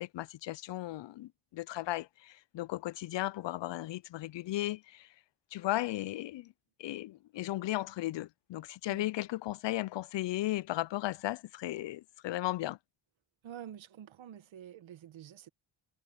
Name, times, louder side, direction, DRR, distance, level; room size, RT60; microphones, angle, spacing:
voice 1, 0.0-5.1 5.5-6.5 6.8-12.8, left 16 dB, 70° left, 0.6 m, -36 dB
voice 2, 13.4-15.5, right 10 dB, 80° right, 1.5 m, -48 dB
cardioid pair, 55°, 46 cm